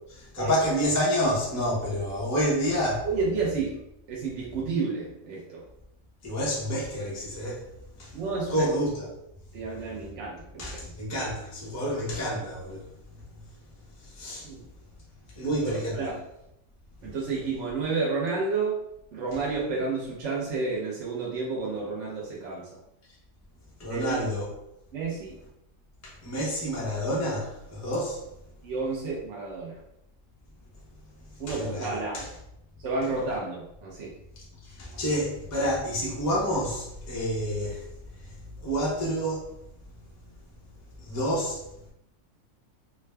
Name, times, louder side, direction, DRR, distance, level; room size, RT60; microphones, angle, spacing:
voice 1, 0.1-3.1 6.2-7.7 8.0-8.1 8.5-9.1 10.6-12.9 14.0-14.5 15.4-16.0 23.8-24.5 26.0-28.2 31.3-32.3 34.6-37.8 38.6-39.5 41.0-41.6, equal, 20° left, -6 dB, 0.4 m, -29 dB
voice 2, 3.0-3.8 4.1-5.6 8.1-8.7 9.5-10.9 14.4-14.7 15.6-16.2 17.0-18.8 19.1-22.8 23.9-24.2 24.9-25.4 28.6-29.8 31.4-32.3 32.8-34.1, right 4 dB, 60° right, -4 dB, 0.7 m, -31 dB
3.7 x 2.3 x 3.2 m, 0.81 s
omnidirectional pair, 2.1 m